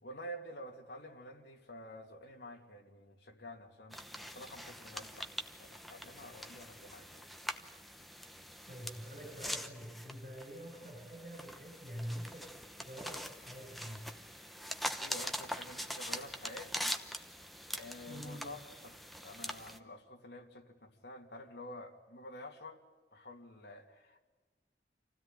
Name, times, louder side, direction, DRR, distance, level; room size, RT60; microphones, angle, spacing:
voice 1, 0.0-5.3 5.6-7.3 15.0-16.9 17.7-18.9 19.2-22.8 23.1-24.2, left 1 dB, 70° left, 2 dB, 2.8 m, -49 dB
sound 1, 3.9-19.8, equal, ahead, 0.9 m, -43 dB
voice 2, 8.7-12.4 12.7-14.0 18.1-18.5, equal, 40° right, -2 dB, 7.7 m, -46 dB
27.0 x 16.5 x 9.2 m, 1.3 s
head